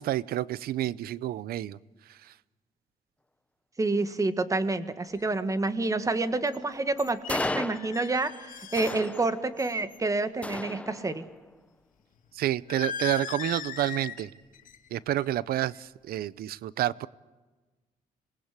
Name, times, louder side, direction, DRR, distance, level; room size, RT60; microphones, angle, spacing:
voice 1, 0.0-1.8 12.3-14.3 14.9-17.1, right 13 dB, 85° right, 20 dB, 0.7 m, -29 dB
voice 2, 3.8-11.2, right 3 dB, 20° right, 11 dB, 1.7 m, -28 dB
sound 1, 5.1-5.2 6.5-6.6 7.0-9.3 9.6-10.0 12.7-14.3 14.5-14.9 15.2-15.5, left 7 dB, 60° left, 2.6 m, -38 dB
sound 2, 7.3-8.3 8.8-9.7 10.4-11.4, left 2 dB, 10° left, 0.7 m, -35 dB
26.5 x 20.0 x 8.3 m, 1.2 s
cardioid pair, 120°, 15 cm